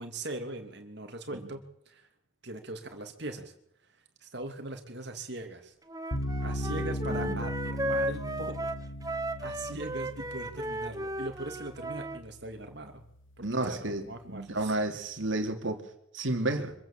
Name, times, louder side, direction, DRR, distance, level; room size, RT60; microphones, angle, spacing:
voice 1, 0.0-2.1 2.4-3.5 4.2-5.7 6.4-8.7 9.0-13.0 13.4-14.8, right 2 dB, 55° right, 5 dB, 2.9 m, -41 dB
Wind instrument woodwind instrument, 5.9-12.2, right 1 dB, 20° right, 1.1 m, -35 dB
sound 1, 6.1-13.2, equal, 75° left, 3.1 m, -37 dB
voice 2, 7.1-7.4 13.4-15.8 16.1-16.7, right 2 dB, 75° right, 5 dB, 2.8 m, -31 dB
25.5 x 15.5 x 7.6 m, 0.75 s
head